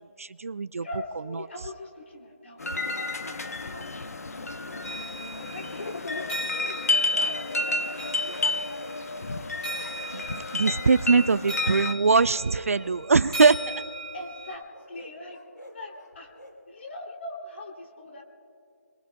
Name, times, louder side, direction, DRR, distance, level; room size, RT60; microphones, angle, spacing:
voice 1, 0.2-0.9 10.5-13.7, right 4 dB, 55° right, 17 dB, 0.4 m, -22 dB
voice 2, 0.8-4.5 5.4-9.0 9.3-11.0 11.6-11.8 14.1-15.4 15.7-16.3 16.7-18.2, left 1 dB, 45° left, 1 dB, 2.8 m, -43 dB
sound 1, 2.6-11.9, left 2 dB, 65° left, 0.8 m, -30 dB
sound 2, 4.4-5.5 5.9-6.8 7.1-7.7 8.0-9.0 9.3-10.1 10.6-10.9 11.4-11.7 12.2-13.0 13.7-13.9 14.7-16.6, left 1 dB, 85° left, 3.3 m, -48 dB
sound 3, 4.8-14.5, right 1 dB, 10° left, 3.7 m, -39 dB
29.0 x 21.5 x 2.3 m, 2.5 s
figure-of-eight pair, 160°, 9 cm